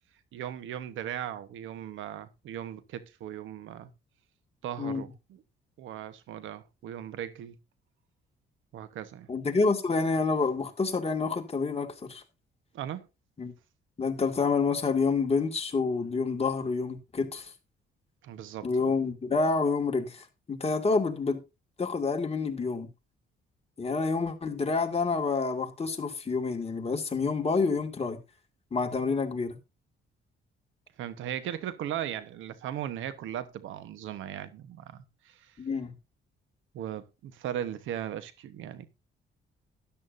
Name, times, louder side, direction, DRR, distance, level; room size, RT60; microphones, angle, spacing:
voice 1, 0.3-3.9 4.6-5.4 5.8-7.6 8.7-9.3 12.7-13.1 18.2-18.9 31.0-35.6 36.7-38.9, right 10 dB, 85° right, 1.2 m, -38 dB
voice 2, 9.3-12.2 13.4-13.5 14.0-17.5 18.6-21.4 21.8-22.9 23.8-28.2 28.7-29.6 35.6-35.9, left 4 dB, 30° left, 2.2 m, -28 dB
13.0 x 10.5 x 2.7 m
cardioid pair, 90°, 20 cm